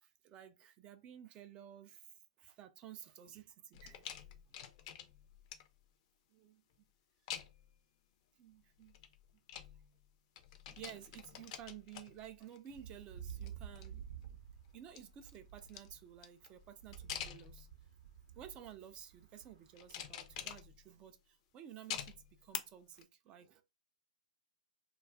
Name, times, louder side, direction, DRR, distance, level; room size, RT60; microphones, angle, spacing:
voice 1, 0.0-4.1 6.3-6.6 8.4-9.0 10.7-14.0 14.7-17.7 18.3-23.6, right 10 dB, 25° right, 0.3 m, -54 dB
sound 1, 3.7-5.9 7.3-7.8 8.8-10.1 10.4-12.8 13.2-14.3 14.7-17.9 18.6-19.0 19.8-21.1 21.9-22.6 23.0-23.1, left 9 dB, 50° left, 0.5 m, -48 dB
sound 2, 12.7-20.7, right 8 dB, 65° right, 0.6 m, -52 dB
2.4 x 2.3 x 3.4 m
hypercardioid pair, 125°, 4 cm